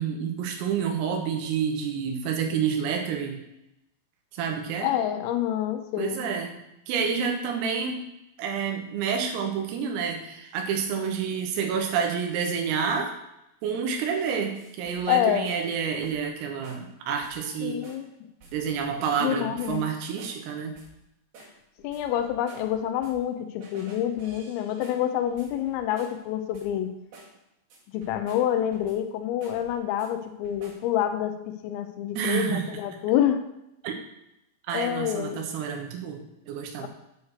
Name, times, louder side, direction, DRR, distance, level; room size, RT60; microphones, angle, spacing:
voice 1, 0.0-3.4 4.3-4.9 6.0-8.0 8.4-13.1 13.6-17.8 18.5-20.8 32.2-32.8 33.8-34.0 34.7-36.9, right 7 dB, 85° right, 3 dB, 3.9 m, -29 dB
voice 2, 4.8-6.2 15.1-15.5 17.6-18.1 19.2-19.8 21.8-26.9 27.9-31.3 31.6-33.4 34.7-35.4 36.8-36.9, left 11 dB, 85° left, 7 dB, 3.4 m, -27 dB
sound 1, 13.7-15.1 15.4-15.7 16.0-16.4 16.6-16.9 17.2-17.5 17.8-18.1 18.4-19.3 19.6-20.5 20.7-21.0 21.3-23.3 23.6-26.3 26.5-26.8 27.1-27.4 27.7-29.1 29.4-30.1 30.4-30.9, right 2 dB, 65° right, 4.1 m, -51 dB
9.2 x 4.8 x 6.5 m, 0.85 s
omnidirectional pair, 5.9 m